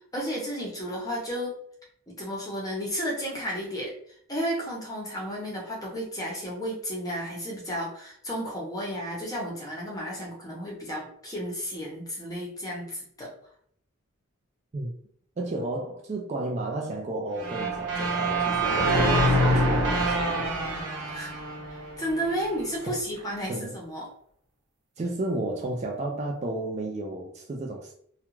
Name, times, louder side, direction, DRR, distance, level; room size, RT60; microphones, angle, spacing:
voice 1, 0.1-1.6 2.1-13.3 21.1-21.4 21.7-24.1, equal, 15° left, -3 dB, 0.7 m, -33 dB
voice 2, 15.4-20.5 22.8-23.0 23.5-23.7 25.0-27.9, right 2 dB, 30° right, 0 dB, 0.3 m, -33 dB
sound 1, 17.4-22.4, right 1 dB, 90° right, 0.7 m, -25 dB
2.3 x 2.2 x 3.0 m, 0.64 s
head